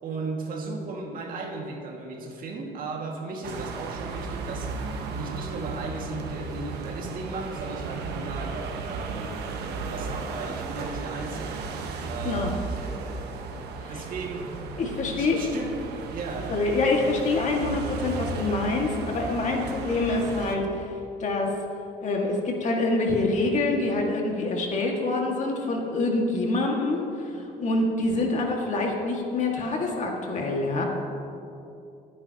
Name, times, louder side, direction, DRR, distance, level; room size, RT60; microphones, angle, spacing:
voice 1, 0.0-4.7 5.2-9.5 9.8-11.7 12.0-14.6 15.1-15.8 16.1-16.6, right 3 dB, 55° right, 0 dB, 2.1 m, -36 dB
sound 1, 3.4-20.6, right 4 dB, 75° right, 1.3 m, -35 dB
voice 2, 14.8-15.4 16.5-20.8 21.2-21.5 22.0-27.0 27.6-30.8, left 2 dB, 45° left, 0 dB, 2.1 m, -26 dB
23.0 x 9.5 x 3.0 m, 2.7 s
cardioid pair, 110°, 17 cm